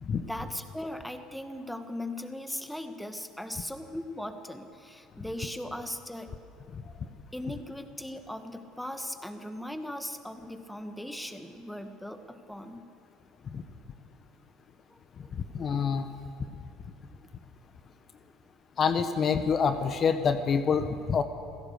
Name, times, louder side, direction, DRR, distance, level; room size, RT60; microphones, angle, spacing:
voice 1, 0.2-6.3 7.3-12.9 14.9-15.4, left 1 dB, 5° left, 8 dB, 1.9 m, -39 dB
voice 2, 15.3-16.1 16.4-16.5 18.8-21.2, left 6 dB, 40° left, 9 dB, 1.2 m, -27 dB
27.5 x 16.5 x 6.7 m, 2.5 s
hypercardioid pair, 65°, 0 cm